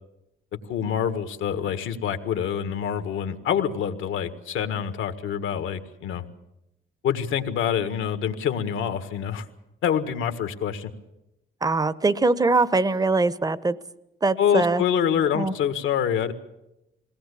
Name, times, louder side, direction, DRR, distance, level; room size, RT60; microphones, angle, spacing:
voice 1, 0.7-6.2 7.0-9.4 9.8-10.9 14.4-16.3, left 8 dB, 80° left, 9 dB, 1.7 m, -26 dB
voice 2, 11.6-13.8 14.2-14.8 15.3-15.5, right 3 dB, 20° right, 17 dB, 0.9 m, -22 dB
21.5 x 18.0 x 8.4 m, 0.90 s
cardioid pair, 90°, 20 cm